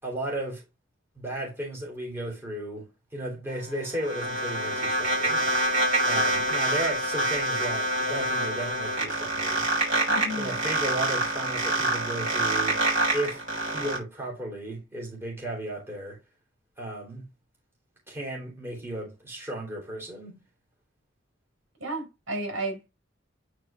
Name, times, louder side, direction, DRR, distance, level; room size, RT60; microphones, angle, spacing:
voice 1, 0.0-0.6 1.1-5.4 6.0-9.6 10.4-12.8 13.1-16.2 16.8-17.2 18.1-20.4, right 1 dB, 10° right, 3.0 m, -34 dB
sound 1, 3.5-14.0, right 2 dB, 40° right, 5.3 m, -26 dB
voice 2, 10.1-10.6 21.8-22.9, right 1 dB, 70° right, 4.9 m, -33 dB
9.4 x 4.5 x 3.5 m
head